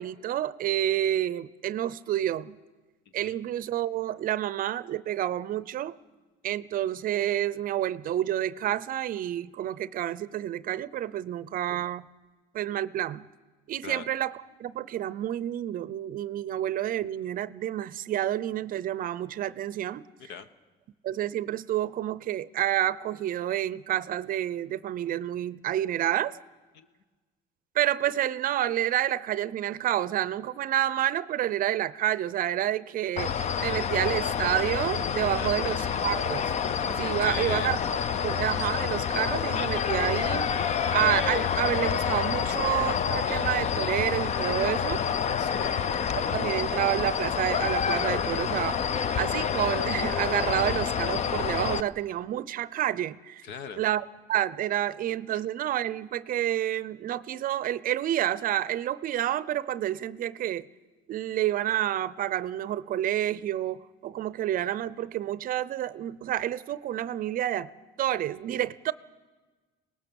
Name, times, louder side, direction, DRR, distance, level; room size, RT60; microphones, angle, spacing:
voice 1, 0.0-2.6 3.1-5.9 6.4-12.0 12.5-13.3 13.7-14.3 14.6-20.0 21.0-26.3 27.7-33.3 33.6-36.5 36.9-37.8 38.2-45.0 46.3-48.8 49.1-53.4 53.8-60.7 61.1-67.7 68.0-68.9, right 12 dB, 50° right, 18 dB, 0.6 m, -29 dB
sound 1, 33.2-51.8, left 7 dB, 40° left, 0.6 m, -28 dB
voice 2, 35.4-35.7 37.2-37.7 45.4-45.8 53.4-53.8, left 6 dB, 70° left, 12 dB, 1.3 m, -39 dB
25.0 x 19.0 x 7.0 m, 1.3 s
cardioid pair, 125°, 19 cm